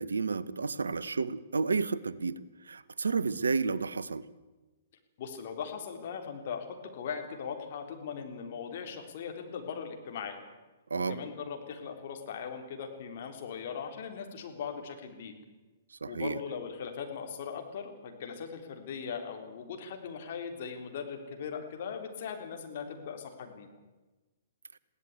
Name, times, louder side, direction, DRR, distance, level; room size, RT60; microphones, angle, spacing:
voice 1, 0.0-2.4 2.7-4.2 10.9-11.2 16.0-16.4, right 4 dB, 75° right, 16 dB, 0.9 m, -31 dB
voice 2, 5.2-10.4 11.1-15.3 16.1-23.7, left 6 dB, 50° left, 4 dB, 3.7 m, -39 dB
22.0 x 16.5 x 8.3 m, 1.2 s
figure-of-eight pair, 115°, 0 cm